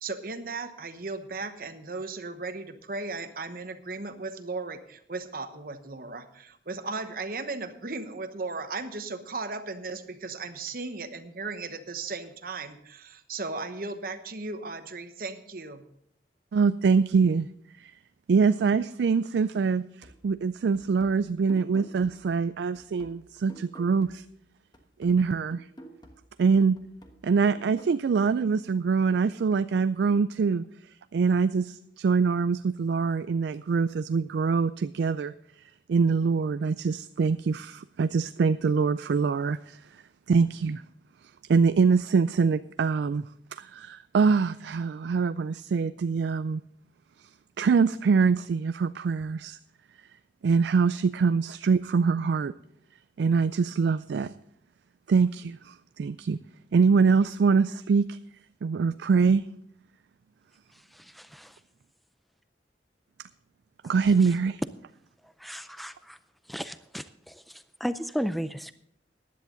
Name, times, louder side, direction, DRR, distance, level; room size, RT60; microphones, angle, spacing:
voice 1, 0.0-15.8, right 3 dB, 55° right, 9 dB, 1.0 m, -36 dB
voice 2, 16.5-17.5 18.3-19.9 20.2-24.2 25.0-25.6 26.4-26.8 27.2-30.6 31.1-35.3 35.9-39.8 40.3-40.8 41.5-43.2 43.5-46.6 47.6-49.6 50.4-52.5 53.2-54.3 55.1-56.4 56.7-58.2 58.6-59.5 63.8-64.6, right 5 dB, 70° right, 13 dB, 0.3 m, -24 dB
sound 1, 20.0-24.5 24.7-28.0, right 1 dB, 25° left, 1.3 m, -51 dB
voice 3, 60.9-61.6 65.4-66.2 66.5-68.7, equal, ahead, 12 dB, 0.4 m, -35 dB
15.5 x 10.5 x 3.9 m, 0.71 s
head